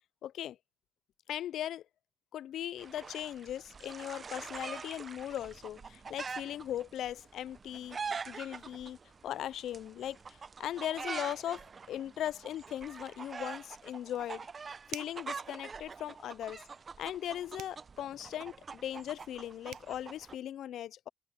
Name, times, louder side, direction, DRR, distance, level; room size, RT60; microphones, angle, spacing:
voice 1, 0.2-0.6 1.3-1.8 2.3-9.0 9.2-11.6 11.9-14.5 14.9-16.6 17.0-21.1, left 11 dB, 75° left, 0.3 m, -39 dB
sound 1, 2.8-20.4, right 5 dB, 40° right, 0.7 m, -45 dB
sound 2, 14.9-15.3 17.6-17.8 19.4-19.5 19.7-19.9, right 14 dB, 85° right, 0.4 m, -45 dB
cardioid pair, 90°, 0 cm